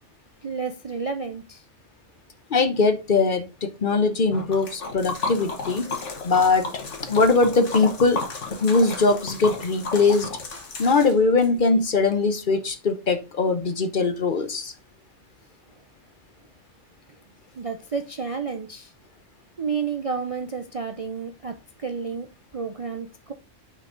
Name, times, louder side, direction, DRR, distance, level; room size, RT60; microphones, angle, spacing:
voice 1, 0.4-1.6 17.6-18.9 19.6-23.3, right 5 dB, 45° right, 0.5 m, -31 dB
voice 2, 2.5-5.9 6.2-6.7 7.0-8.2 8.5-10.3 10.8-14.7, left 3 dB, 50° left, 0.8 m, -21 dB
Liquid, 4.3-11.5, left 3 dB, 70° left, 1.7 m, -33 dB
5.9 x 5.5 x 3.8 m
omnidirectional pair, 1.3 m